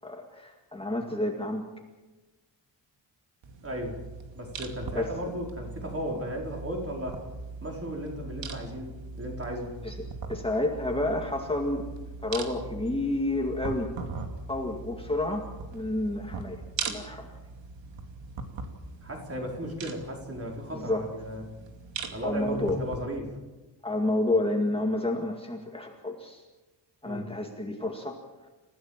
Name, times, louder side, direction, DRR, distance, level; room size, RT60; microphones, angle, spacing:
voice 1, 0.0-1.6 4.9-5.1 9.8-10.0 10.3-11.9 12.2-13.9 14.5-15.5 15.7-17.3 20.7-21.1 22.2-22.8 23.8-26.4 27.0-28.2, left 2 dB, 15° left, 1 dB, 2.1 m, -30 dB
sound 1, 3.4-23.0, right 4 dB, 90° right, 2.7 m, -40 dB
voice 2, 3.6-4.0 4.3-7.2 7.6-9.7 19.0-21.5 22.1-23.3 27.0-27.3, equal, 30° right, 0 dB, 5.0 m, -35 dB
29.0 x 15.5 x 7.5 m, 1.2 s
wide cardioid pair, 175°, 43 cm